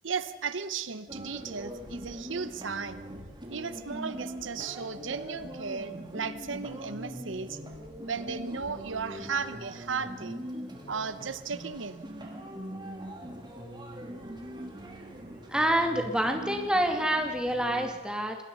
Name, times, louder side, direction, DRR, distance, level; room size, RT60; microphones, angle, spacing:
voice 1, 0.0-3.0 3.5-7.6 8.0-10.4 10.9-12.0, right 5 dB, 90° right, 13 dB, 1.0 m, -35 dB
sound 1, 1.1-17.9, equal, 25° right, 3.2 m, -42 dB
voice 2, 15.3-18.4, right 1 dB, 5° right, 3 dB, 2.4 m, -27 dB
26.0 x 20.0 x 5.6 m, 1.1 s
head